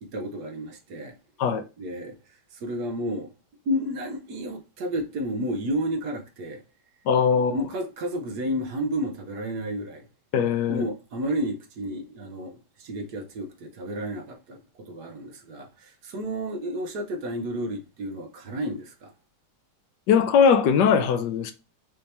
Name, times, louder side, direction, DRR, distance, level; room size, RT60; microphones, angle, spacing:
voice 1, 0.0-1.1 1.8-2.1 2.6-3.3 3.7-6.6 7.5-10.1 10.7-14.6 14.9-19.1, equal, 70° right, 1.4 m, -31 dB
voice 2, 7.1-7.5 10.3-10.9 20.1-21.5, left 7 dB, 80° left, 1.3 m, -20 dB
5.5 x 2.9 x 3.3 m
omnidirectional pair, 1.8 m